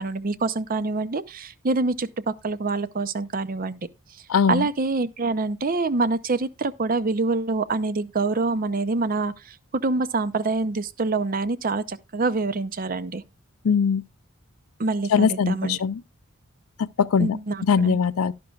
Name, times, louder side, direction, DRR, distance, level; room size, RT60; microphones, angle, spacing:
voice 1, 0.0-3.9 4.5-13.2 14.8-15.8 17.2-18.0, right 3 dB, 40° right, 0.6 m, -26 dB
voice 2, 4.3-4.7 13.6-14.0 15.1-16.0 16.8-17.4 17.6-18.3, left 6 dB, 80° left, 0.5 m, -21 dB
11.5 x 11.5 x 2.4 m
head